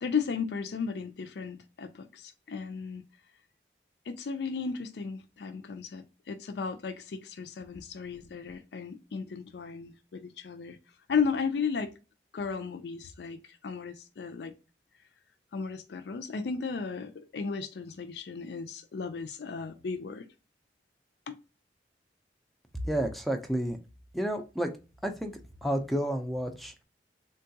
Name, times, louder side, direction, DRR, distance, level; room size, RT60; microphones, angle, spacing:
voice 1, 0.0-3.0 4.1-10.8 11.1-11.9 12.3-14.5 15.5-20.3 21.3-21.4, left 5 dB, 75° left, 0.4 m, -35 dB
voice 2, 22.8-23.8 24.1-24.7 25.0-25.3 25.6-26.8, right 1 dB, ahead, 0.4 m, -30 dB
3.7 x 2.3 x 2.6 m
head